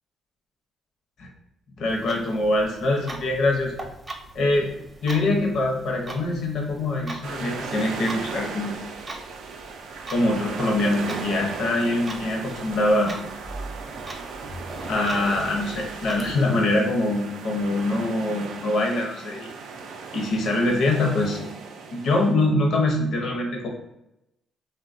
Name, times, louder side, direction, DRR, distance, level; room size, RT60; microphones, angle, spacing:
voice 1, 1.8-3.7 4.3-4.7 5.0-8.8 10.1-13.1 14.8-19.5 20.1-21.4 21.9-23.7, left 2 dB, 65° left, 0 dB, 0.7 m, -24 dB
Clock, 1.9-16.3, right 2 dB, 25° right, 0.5 m, -41 dB
sound 1, 7.2-22.3, right 4 dB, 80° right, 0.3 m, -36 dB
3.1 x 2.2 x 2.5 m, 0.86 s
cardioid pair, 90°, 0 cm